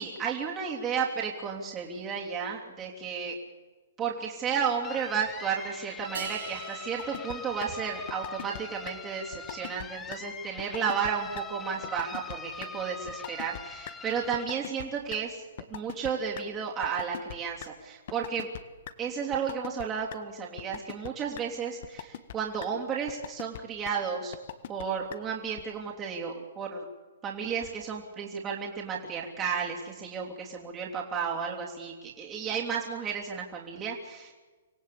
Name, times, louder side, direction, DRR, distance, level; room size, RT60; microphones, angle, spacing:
voice 1, 0.0-3.4 4.0-15.4 15.7-18.5 19.0-24.3 24.7-26.9 27.2-34.3, right 6 dB, 20° right, -2 dB, 3.3 m, -33 dB
sound 1, 4.8-14.4, left 5 dB, 15° left, 1.3 m, -43 dB
sound 2, 6.1-8.4, right 5 dB, 85° right, 4.8 m, -42 dB
sound 3, 7.0-7.4 7.6-7.7 8.1-8.6 8.9-9.0 9.3-9.9 10.1-10.2 10.6-11.1 11.4-11.5 11.8-12.4 12.6-12.7 13.1-13.6 13.9-14.0 14.3-15.2 15.6-16.4 16.8-17.7 18.1-18.6 18.9-19.0 19.3-19.8 20.1-20.2 20.6-21.1 21.4-21.5 21.8-22.3 22.6-22.7 23.1-23.6 23.9-24.0 24.3-24.8 25.1-25.2 25.6-25.7, left 11 dB, 55° left, 1.5 m, -39 dB
25.5 x 16.5 x 8.6 m, 1.3 s
hypercardioid pair, 140°, 0 cm